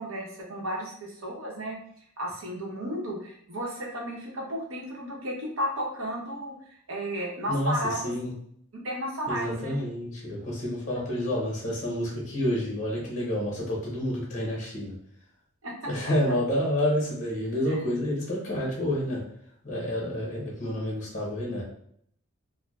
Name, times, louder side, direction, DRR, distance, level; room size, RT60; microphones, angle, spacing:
voice 1, 0.0-1.8 2.2-8.2 8.7-9.8 15.6-15.7 17.7-17.8, equal, 75° right, -2 dB, 0.9 m, -33 dB
voice 2, 7.5-8.3 9.3-15.0 15.8-19.2 19.6-21.6, left 1 dB, 35° left, -4 dB, 0.9 m, -29 dB
4.5 x 2.0 x 2.3 m, 0.66 s
head